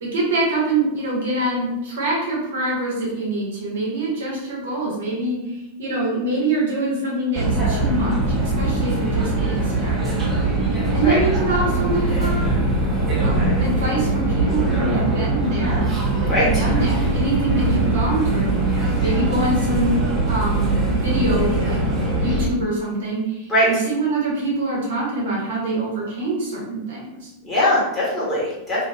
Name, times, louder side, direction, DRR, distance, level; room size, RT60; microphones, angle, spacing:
voice 1, 0.0-8.1 8.4-10.2 10.5-12.5 13.2-15.9 16.4-20.0 20.3-27.3, right 2 dB, 60° right, -5 dB, 0.8 m, -25 dB
sound 1, 7.3-22.5, right 2 dB, 25° right, 0.7 m, -21 dB
voice 2, 27.4-28.9, left 1 dB, 20° left, -8 dB, 1.3 m, -20 dB
2.5 x 2.3 x 2.3 m, 0.92 s
figure-of-eight pair, 90°, 0 cm